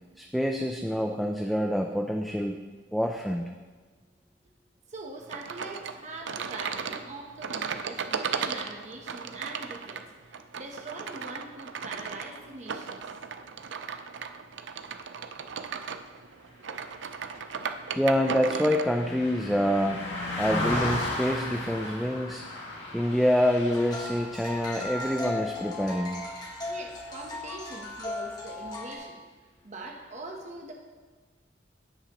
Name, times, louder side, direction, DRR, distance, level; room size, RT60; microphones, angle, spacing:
voice 1, 0.2-2.6 2.9-3.5 18.0-20.1 20.4-22.5 22.9-26.2, equal, ahead, 2 dB, 0.4 m, -26 dB
voice 2, 4.9-13.1 26.6-29.2 29.6-30.7, right 2 dB, 40° right, 1 dB, 1.0 m, -42 dB
sound 1, 5.3-18.9, right 6 dB, 90° right, 0.5 m, -36 dB
Car passing by, 17.0-26.5 26.9-27.1, left 1 dB, 75° left, 2.3 m, -36 dB
Music box vertical, 23.7-29.0, left 2 dB, 25° left, 1.5 m, -37 dB
16.0 x 5.7 x 3.0 m, 1.4 s
head